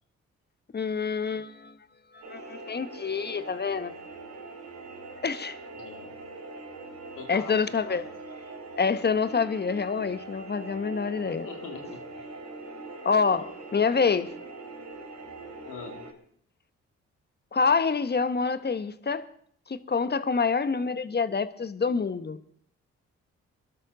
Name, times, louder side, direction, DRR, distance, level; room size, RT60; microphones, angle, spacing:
voice 1, 0.7-1.7 2.1-3.9 5.2-5.6 7.3-8.0 8.8-11.5 13.0-14.3 17.5-19.2 19.7-22.4, left 5 dB, 30° left, 1.1 m, -27 dB
sound 1, 2.2-16.1, right 2 dB, 60° right, 3.2 m, -42 dB
voice 2, 5.7-6.2 7.1-8.1 11.2-12.0 13.3-13.4 15.6-16.1, left 5 dB, 80° left, 2.4 m, -43 dB
21.0 x 12.5 x 3.9 m
supercardioid pair, 50°, 31 cm